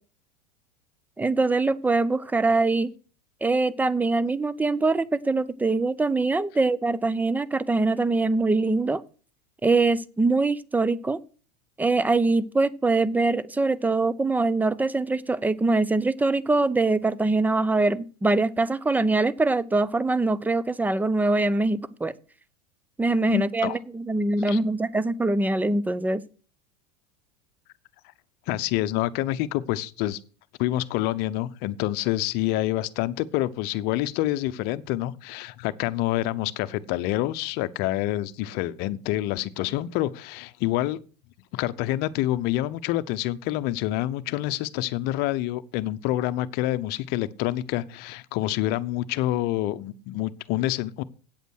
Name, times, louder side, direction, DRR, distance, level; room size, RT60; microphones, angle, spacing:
voice 1, 1.2-2.9 3.4-9.0 9.6-11.2 11.8-22.1 23.0-26.2, right 3 dB, 10° right, 0.6 m, -23 dB
voice 2, 23.3-23.8 24.5-24.6 28.5-30.2 30.6-41.0 41.5-51.0, left 15 dB, 50° left, 0.8 m, -27 dB
8.7 x 8.2 x 6.2 m
hypercardioid pair, 95°, 21 cm